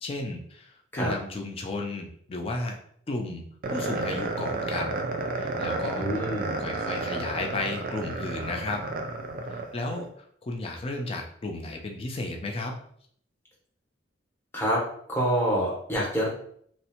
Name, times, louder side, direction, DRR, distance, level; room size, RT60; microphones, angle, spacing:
voice 1, 0.0-2.8 3.1-4.9 5.4-6.2 6.6-8.8 9.5-12.8, left 2 dB, 30° left, 2 dB, 0.4 m, -34 dB
sound 1, 3.6-10.0, right 3 dB, 50° right, 0.4 m, -31 dB
voice 2, 6.0-6.6 14.5-14.8 15.1-16.3, equal, 10° left, -4 dB, 0.8 m, -26 dB
2.6 x 2.0 x 2.8 m, 0.63 s
head